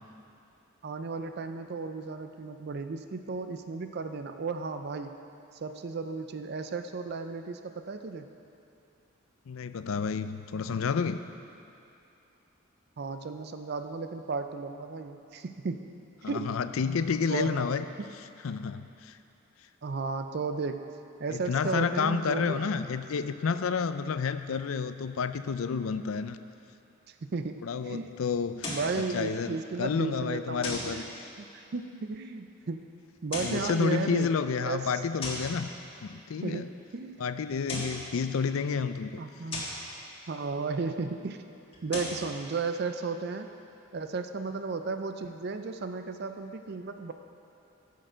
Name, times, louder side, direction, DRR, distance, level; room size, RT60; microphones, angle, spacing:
voice 1, 0.8-5.2 5.5-8.3 13.0-15.9 16.2-16.5 17.3-17.7 18.0-18.1 19.8-20.9 21.2-22.6 27.1-28.1 28.7-31.1 31.4-32.9 33.2-34.3 34.6-35.0 36.4-37.2 39.2-39.7 40.3-41.4 41.8-43.5 43.9-47.1, right 4 dB, 50° right, 8 dB, 0.4 m, -34 dB
voice 2, 9.5-11.2 16.2-17.9 18.4-19.2 21.3-26.4 27.6-28.7 29.1-31.0 33.4-35.7 36.0-36.7 37.2-39.2, left 5 dB, 80° left, 11 dB, 0.4 m, -30 dB
sound 1, 28.6-29.0 30.6-31.0 33.2-33.7 35.2-35.6 37.5-38.0 39.5-39.9 41.7-42.3, left 2 dB, 25° left, 1.7 m, -36 dB
14.5 x 6.6 x 5.0 m, 2.7 s
head